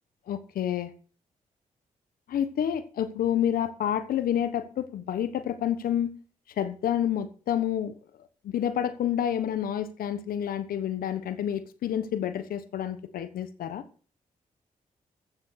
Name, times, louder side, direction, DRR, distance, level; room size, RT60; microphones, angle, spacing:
voice 1, 0.3-0.9 2.3-6.2 6.6-8.0 8.4-13.8, left 10 dB, 85° left, 1.2 m, -29 dB
14.5 x 7.4 x 6.3 m
cardioid pair, 60°, 15 cm